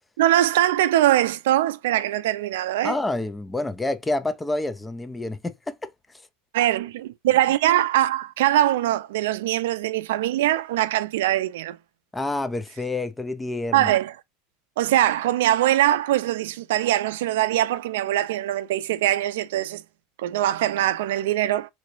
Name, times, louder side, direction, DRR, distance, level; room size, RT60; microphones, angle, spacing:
voice 1, 0.2-2.9 6.5-11.8 13.7-14.1 14.8-19.8 20.2-21.7, right 13 dB, 85° right, 0.4 m, -22 dB
voice 2, 2.8-6.2 12.1-13.9, left 2 dB, 10° left, 0.4 m, -28 dB
3.8 x 3.0 x 2.6 m
supercardioid pair, 140°, 0 cm